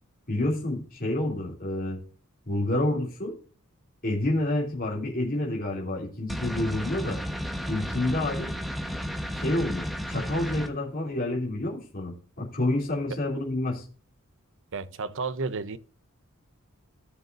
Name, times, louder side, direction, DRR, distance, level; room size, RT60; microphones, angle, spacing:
voice 1, 0.3-2.0 2.5-3.4 4.0-7.2 7.7-8.5 9.3-13.8, left 1 dB, 40° left, 3.0 m, -28 dB
sound 1, 6.3-10.7, equal, ahead, 1.1 m, -33 dB
voice 2, 14.7-15.8, right 4 dB, 60° right, 0.7 m, -32 dB
17.0 x 6.7 x 2.6 m
head